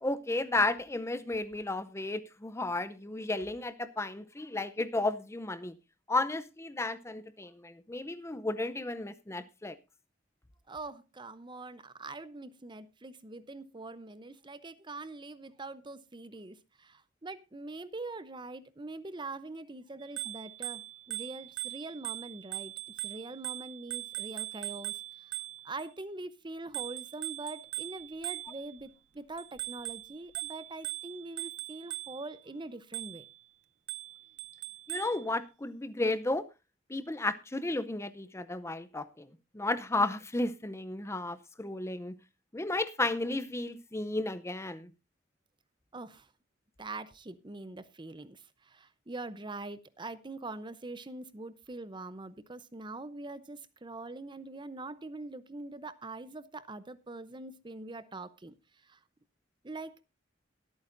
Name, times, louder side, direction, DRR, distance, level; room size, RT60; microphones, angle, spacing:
voice 1, 0.0-5.8 6.1-9.8 34.9-36.4 36.9-39.3 39.5-42.2 42.5-44.9, left 2 dB, 15° left, 0.6 m, -33 dB
voice 2, 10.7-22.7 23.0-25.0 25.6-33.3 45.9-46.3 46.8-58.5 58.8-59.0 59.6-59.9, right 2 dB, 25° right, 0.8 m, -43 dB
Bicycle bell, 20.0-25.8 26.7-28.8 29.4-32.3 32.9-33.4 33.9-35.2, right 19 dB, 85° right, 0.8 m, -40 dB
22.5 x 8.7 x 2.6 m
head